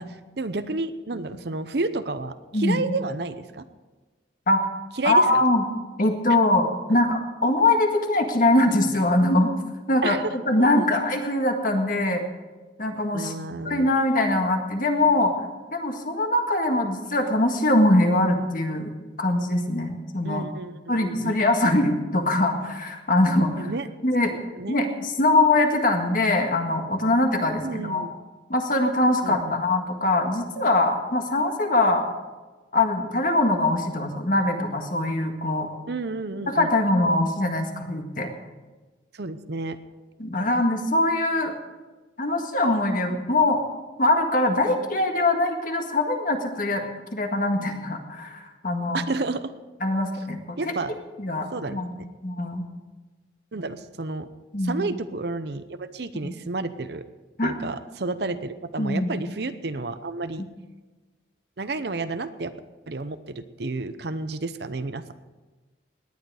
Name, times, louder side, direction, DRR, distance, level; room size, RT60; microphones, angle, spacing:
voice 1, 0.0-3.6 4.9-5.2 6.9-7.0 10.0-10.9 13.1-13.9 20.2-21.4 23.6-23.9 24.3-24.8 27.6-28.1 29.2-29.6 35.9-36.7 37.0-37.1 39.1-39.8 48.9-49.5 50.6-50.9 51.5-52.1 53.5-54.3 54.6-57.0 57.4-60.4 61.6-62.5 62.9-65.1, right 3 dB, 60° right, 11 dB, 0.7 m, -31 dB
voice 2, 5.0-5.6 6.0-9.5 9.9-10.2 10.5-12.2 12.8-13.4 13.7-15.3 15.7-18.9 19.2-20.4 20.9-23.7 24.0-24.3 24.7-28.1 28.5-32.0 32.7-35.7 36.5-38.3 40.2-41.5 42.2-43.6 44.0-46.8 47.1-49.0 49.8-50.6 51.2-51.9 52.2-52.6 54.5-54.8 56.2-56.3 57.4-57.5 58.8-59.1, left 2 dB, 45° left, 4 dB, 1.8 m, -22 dB
18.5 x 10.5 x 4.9 m, 1.2 s
head